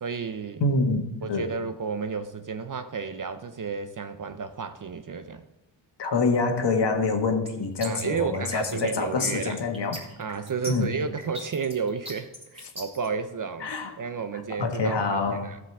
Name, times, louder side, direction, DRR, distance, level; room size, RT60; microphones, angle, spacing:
voice 1, 0.0-0.6 1.2-5.5 7.8-9.6 10.2-15.6, right 5 dB, 40° right, 0.6 m, -32 dB
voice 2, 0.6-1.5 6.0-10.0 10.7-10.9 13.6-13.9 14.6-15.5, left 3 dB, 60° left, 1.6 m, -26 dB
sound 1, 7.5-13.1, equal, 10° right, 3.2 m, -39 dB
14.5 x 5.2 x 7.2 m
wide cardioid pair, 115°, 48 cm